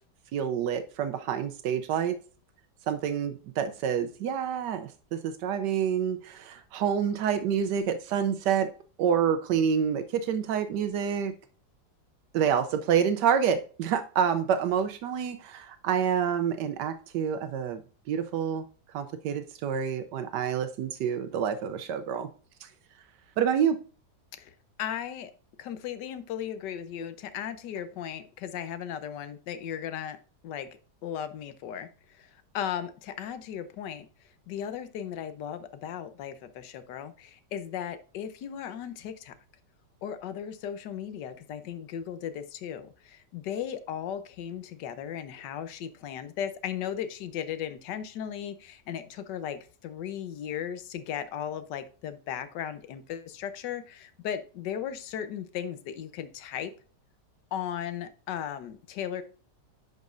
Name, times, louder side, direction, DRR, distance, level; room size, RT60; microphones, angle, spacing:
voice 1, 0.3-2.1 2.9-8.7 9.0-11.3 12.3-17.8 18.1-18.6 18.9-22.3 22.6-22.7 23.4-23.8, right 8 dB, 80° right, 10 dB, 1.2 m, -28 dB
voice 2, 24.8-25.3 25.6-30.2 30.4-30.7 31.0-31.9 32.2-32.3 32.5-34.1 34.5-39.3 40.0-56.7 57.5-59.2, left 9 dB, 80° left, 11 dB, 1.4 m, -36 dB
10.5 x 5.2 x 2.5 m, 0.39 s
omnidirectional pair, 1.9 m